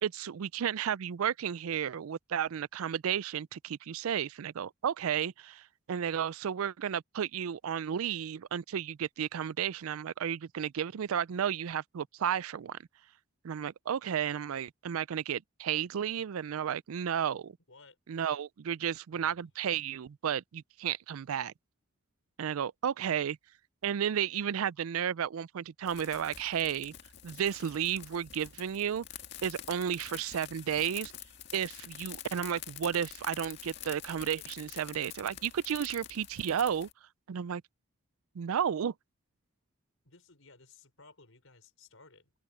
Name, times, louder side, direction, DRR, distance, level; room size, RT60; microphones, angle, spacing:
voice 1, 0.0-12.8 13.4-17.6 18.1-21.5 22.4-23.4 23.8-26.9 27.2-29.0 29.4-31.1 31.5-36.9 37.3-37.6 38.4-38.9, right 8 dB, 85° right, 0.4 m, -33 dB
voice 2, 17.7-18.0 19.1-19.4 40.0-42.3, left 3 dB, 75° left, 5.2 m, -58 dB
sound 1, 25.9-36.9, left 10 dB, 50° left, 2.1 m, -47 dB
open air
head